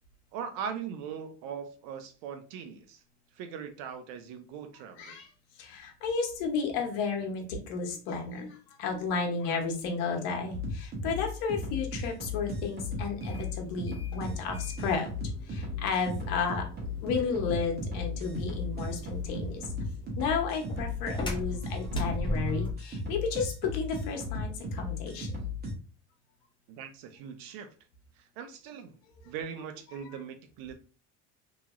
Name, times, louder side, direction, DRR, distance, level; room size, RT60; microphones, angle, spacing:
voice 1, 0.3-3.0 3.3-5.2 26.7-27.7 28.2-29.0 29.2-30.7, right 7 dB, 75° right, 0.7 m, -40 dB
voice 2, 5.6-15.1 15.5-16.6 17.0-19.6 20.2-25.3, left 5 dB, 75° left, 1.0 m, -32 dB
sound 1, 10.5-25.7, left 3 dB, 30° right, 1.1 m, -35 dB
sound 2, 13.0-22.9, left 1 dB, 15° left, 0.8 m, -40 dB
3.0 x 2.8 x 2.5 m
cardioid pair, 125°, 34 cm